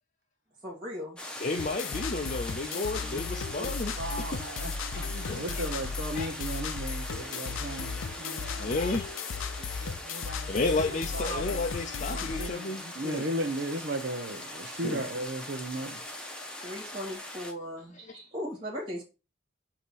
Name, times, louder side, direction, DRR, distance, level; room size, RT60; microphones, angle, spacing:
voice 1, 0.6-1.2 16.6-19.0, equal, 25° right, 1.8 m, -38 dB
sound 1, 1.2-17.5, left 1 dB, 5° left, 1.0 m, -41 dB
voice 2, 1.4-4.5 4.9-5.7 6.1-6.6 8.6-9.1 9.6-9.9 10.5-13.3 14.8-15.1 16.6-16.9 17.9-18.1, left 3 dB, 40° left, 0.5 m, -33 dB
sound 2, 1.6-12.5, left 5 dB, 80° left, 0.6 m, -36 dB
voice 3, 2.6-3.7 4.0-8.8 9.6-10.7 11.1-11.6 12.1-16.0, right 1 dB, 55° right, 0.8 m, -36 dB
8.3 x 2.8 x 6.2 m
head